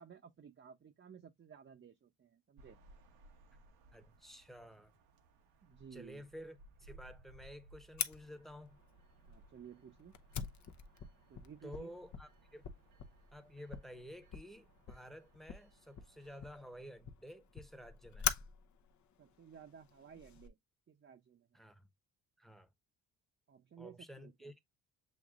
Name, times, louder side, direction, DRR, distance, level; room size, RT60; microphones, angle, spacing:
voice 1, 0.0-2.8 5.6-6.3 9.3-10.2 11.3-11.9 19.2-20.6 20.9-21.6 23.5-24.5, right 7 dB, 35° right, 0.8 m, -56 dB
sound 1, 2.6-16.9, right 2 dB, 85° right, 1.2 m, -63 dB
voice 2, 3.9-4.9 5.9-8.8 11.6-12.6 13.3-18.3 21.5-21.9 22.4-22.7 23.8-24.6, equal, ahead, 1.0 m, -52 dB
Fire, 8.0-20.5, left 8 dB, 50° left, 0.8 m, -45 dB
7.2 x 2.9 x 2.4 m
supercardioid pair, 70°, 37 cm